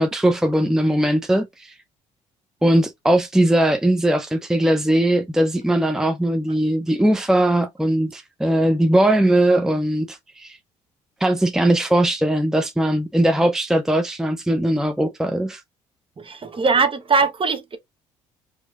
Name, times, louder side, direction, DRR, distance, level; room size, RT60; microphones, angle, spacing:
voice 1, 0.0-1.7 2.6-10.6 11.2-15.6, right 1 dB, 5° right, 0.6 m, -19 dB
voice 2, 16.2-17.8, right 4 dB, 35° right, 1.0 m, -20 dB
4.4 x 2.9 x 2.4 m
hypercardioid pair, 60°, 16 cm